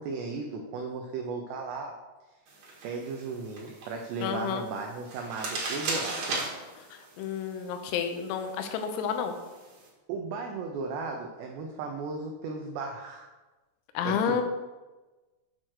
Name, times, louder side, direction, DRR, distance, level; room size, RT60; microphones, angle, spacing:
voice 1, 0.0-1.9 2.8-6.4 10.1-13.3 14.1-14.4, right 4 dB, 90° right, 1 dB, 2.4 m, -36 dB
sound 1, 2.5-9.9, right 3 dB, 55° right, 2.2 m, -38 dB
voice 2, 4.2-4.7 7.2-9.4 14.0-14.4, left 7 dB, 85° left, 7 dB, 3.5 m, -30 dB
8.5 x 4.5 x 6.4 m, 1.2 s
omnidirectional pair, 6.0 m